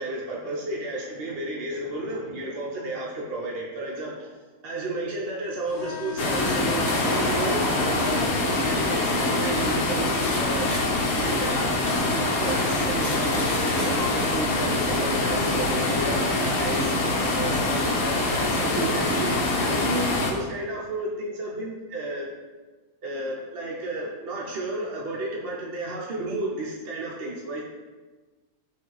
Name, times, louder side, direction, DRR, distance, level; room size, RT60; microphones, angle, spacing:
voice 1, 0.0-8.2 8.5-10.7 11.2-11.8 12.1-16.9 17.3-22.3 23.0-27.6, right 2 dB, 60° right, -4 dB, 0.6 m, -32 dB
sound 1, 5.7-9.8, left 8 dB, 65° left, 1.0 m, -37 dB
sound 2, 5.7-10.4 10.7-10.8 11.3-11.4 11.9-12.0 12.4-12.5 12.8-13.9, equal, 15° right, 0.8 m, -36 dB
sound 3, 6.2-20.3, left 2 dB, 80° left, 1.1 m, -24 dB
5.5 x 2.5 x 3.0 m, 1.3 s
omnidirectional pair, 1.5 m